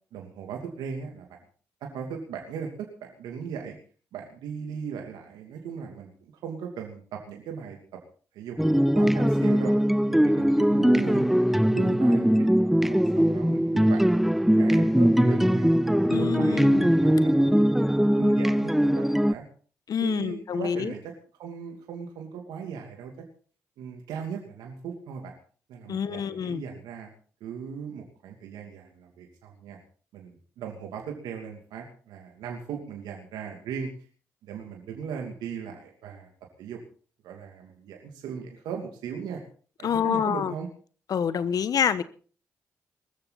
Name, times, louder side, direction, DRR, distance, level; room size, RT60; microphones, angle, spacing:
voice 1, 0.1-1.3 1.8-3.8 4.1-7.8 8.3-9.7 10.1-11.3 11.6-15.7 16.2-19.4 20.0-21.1 21.4-23.3 23.8-25.4 25.7-27.1 27.4-29.8 30.1-33.9 34.4-36.3 36.6-36.8 37.2-39.4 39.8-40.7, right 7 dB, 80° right, 2 dB, 2.7 m, -38 dB
sound 1, 8.6-19.3, equal, 5° right, 0.6 m, -21 dB
voice 2, 16.1-16.9 19.9-20.9 25.9-26.6 39.8-40.5 41.1-42.0, left 8 dB, 65° left, 14 dB, 1.2 m, -27 dB
21.0 x 14.0 x 4.1 m, 0.42 s
hypercardioid pair, 45°, 7 cm